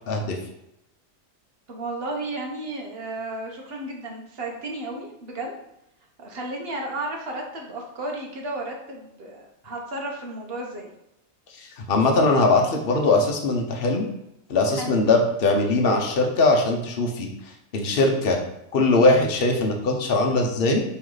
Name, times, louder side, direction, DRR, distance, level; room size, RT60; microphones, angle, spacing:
voice 1, 1.7-5.6 6.2-10.9 14.7-15.0, right 2 dB, 50° right, 0 dB, 1.4 m, -33 dB
voice 2, 11.9-14.1 14.5-17.3 17.7-18.4 18.7-20.8, left 2 dB, 50° left, 2 dB, 1.1 m, -20 dB
7.7 x 3.3 x 4.0 m, 0.84 s
omnidirectional pair, 1.4 m